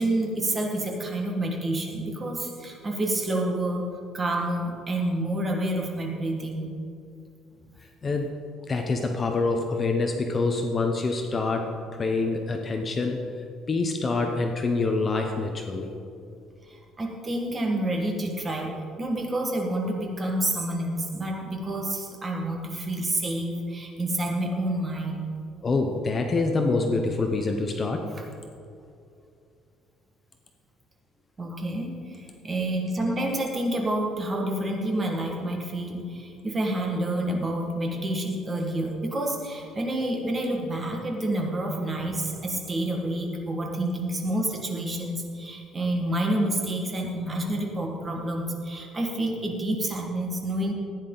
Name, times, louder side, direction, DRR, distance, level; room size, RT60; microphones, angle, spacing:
voice 1, 0.0-3.9 4.1-6.7 16.6-18.7 19.0-25.3 31.4-50.7, right 1 dB, 20° right, 1 dB, 1.6 m, -28 dB
voice 2, 8.0-8.3 8.7-15.9 25.6-28.1, left 3 dB, 25° left, 4 dB, 0.7 m, -26 dB
14.5 x 9.7 x 3.9 m, 2.5 s
cardioid pair, 155°, 0 cm